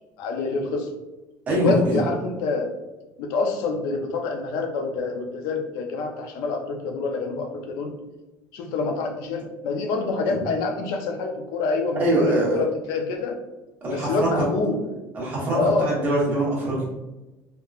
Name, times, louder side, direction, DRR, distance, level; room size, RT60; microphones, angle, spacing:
voice 1, 0.2-0.9 1.5-2.7 3.2-7.9 8.5-13.4 13.9-14.8 15.5-16.0, left 3 dB, 70° left, 3 dB, 0.6 m, -26 dB
voice 2, 1.5-2.0 10.3-10.4 12.0-12.6 13.8-14.3 15.1-16.8, right 1 dB, 25° right, -6 dB, 1.1 m, -23 dB
3.6 x 2.9 x 2.4 m, 1.1 s
cardioid pair, 175°, 7 cm